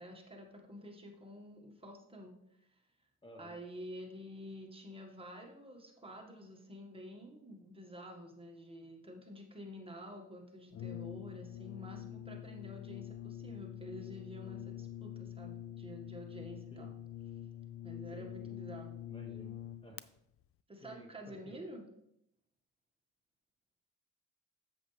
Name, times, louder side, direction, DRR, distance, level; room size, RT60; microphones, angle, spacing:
voice 1, 0.0-2.3 3.4-16.9 17.8-19.0 20.7-21.8, equal, 20° right, 1 dB, 1.6 m, -49 dB
voice 2, 3.2-3.6 16.7-16.9 18.1-18.5 19.1-19.5 19.8-20.0 20.8-21.6, equal, 15° left, 2 dB, 1.1 m, -53 dB
Brass instrument, 10.7-20.1, left 11 dB, 50° left, 0.4 m, -45 dB
7.9 x 7.2 x 3.3 m, 0.80 s
cardioid pair, 90°, 30 cm